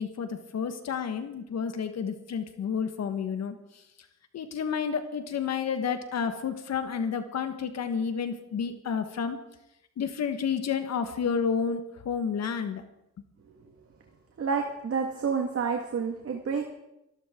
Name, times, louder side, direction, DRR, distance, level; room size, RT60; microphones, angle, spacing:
voice 1, 0.0-3.5 4.3-9.4 10.0-12.8, left 6 dB, 60° left, 8 dB, 1.5 m, -30 dB
voice 2, 14.4-16.7, right 5 dB, 50° right, 3 dB, 1.8 m, -29 dB
24.5 x 12.5 x 3.8 m, 0.87 s
cardioid pair, 90°, 30 cm